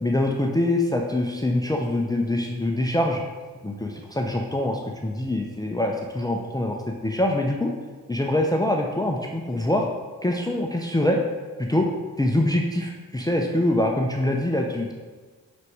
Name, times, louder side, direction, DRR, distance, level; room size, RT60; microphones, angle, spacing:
voice 1, 0.0-3.2 3.6-7.7 8.1-9.9 10.2-11.2 11.6-11.9 12.2-14.9, left 1 dB, 10° left, 1 dB, 0.7 m, -24 dB
5.3 x 4.1 x 4.8 m, 1.4 s
supercardioid pair, 40°, 37 cm